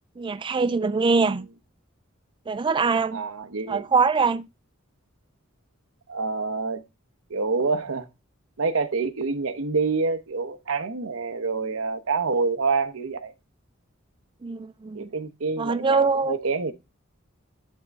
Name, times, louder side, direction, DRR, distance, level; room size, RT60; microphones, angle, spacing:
voice 1, 0.2-1.5 2.5-3.2 3.7-4.5 14.4-15.1 15.6-16.4, right 4 dB, 25° right, 0.3 m, -23 dB
voice 2, 3.1-3.8 6.1-6.8 7.3-8.1 8.6-13.3 14.9-16.7, right 4 dB, 80° right, 0.9 m, -27 dB
10.5 x 3.7 x 5.2 m
head